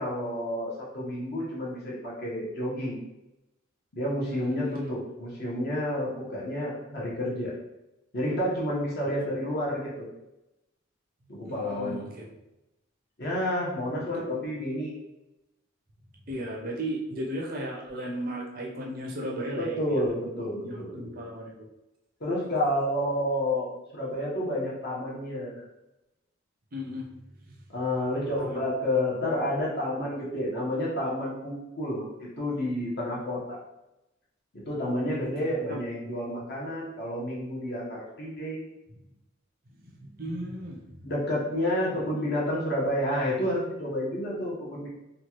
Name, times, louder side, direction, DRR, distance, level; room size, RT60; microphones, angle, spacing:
voice 1, 0.0-3.0 3.9-7.5 8.1-10.1 11.3-12.0 13.2-15.0 19.6-21.0 22.2-25.6 27.7-33.6 34.5-38.6 41.0-44.9, left 1 dB, 50° left, -5 dB, 0.9 m, -30 dB
voice 2, 4.3-5.0 11.4-12.3 14.3-14.4 16.3-20.0 20.6-21.5 26.7-27.2 28.4-28.6 35.2-35.8 39.8-41.1 41.8-42.0, equal, 45° right, -1 dB, 0.6 m, -36 dB
3.0 x 2.3 x 2.9 m, 0.94 s
head